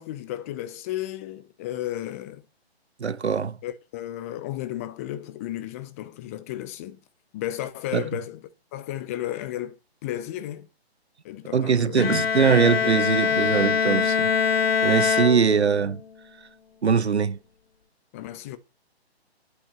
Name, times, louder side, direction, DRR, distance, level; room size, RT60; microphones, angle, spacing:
voice 1, 0.0-2.4 3.6-7.0 7.3-10.7 11.2-12.1 12.8-13.4 18.1-18.6, left 13 dB, 15° left, 0.5 m, -34 dB
voice 2, 3.0-3.6 7.9-8.0 11.5-14.3 14.8-16.0 16.8-17.4, right 6 dB, 85° right, 0.9 m, -22 dB
Bowed string instrument, 12.0-16.0, left 6 dB, 70° left, 0.9 m, -23 dB
8.7 x 8.1 x 7.6 m
figure-of-eight pair, 140°, 32 cm